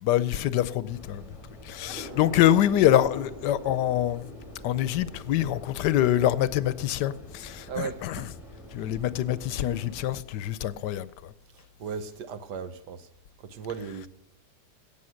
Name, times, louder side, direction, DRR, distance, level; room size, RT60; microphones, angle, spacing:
voice 1, 0.0-1.2 1.6-4.3 4.6-8.3 8.7-11.3, left 12 dB, 80° left, 1.2 m, -25 dB
sound 1, 0.9-10.2, left 2 dB, 20° left, 1.0 m, -47 dB
sound 2, 1.9-11.1, equal, 45° right, 4.7 m, -48 dB
voice 2, 7.7-8.3 8.8-8.9 11.8-13.1 13.4-14.1, right 6 dB, 70° right, 1.5 m, -36 dB
17.0 x 7.0 x 6.4 m
omnidirectional pair, 1.9 m